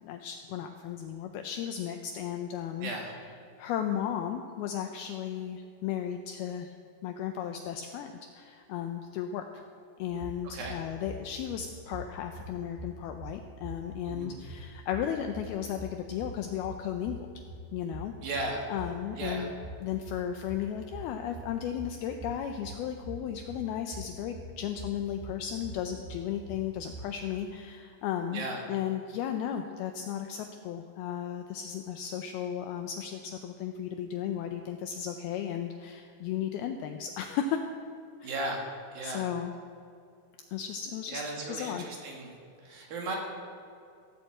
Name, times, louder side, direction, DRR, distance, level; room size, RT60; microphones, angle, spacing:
voice 1, 0.0-2.9 3.6-6.7 7.0-9.6 10.0-17.3 17.7-18.1 18.7-19.5 19.8-28.4 28.7-37.6 38.2-38.3 39.0-39.5 40.5-41.2 41.5-41.9 42.7-42.9, left 9 dB, 80° left, 5 dB, 2.2 m, -35 dB
voice 2, 2.8-3.2 10.4-10.8 14.0-14.4 18.2-18.6 19.2-19.5 28.3-28.6 38.2-38.6 38.9-39.3 41.1-42.3 42.6-43.2, right 2 dB, 60° right, 0 dB, 3.4 m, -36 dB
sound 1, 10.0-27.1, right 1 dB, 80° right, 4.1 m, -45 dB
16.0 x 8.0 x 7.7 m, 2.5 s
omnidirectional pair, 5.1 m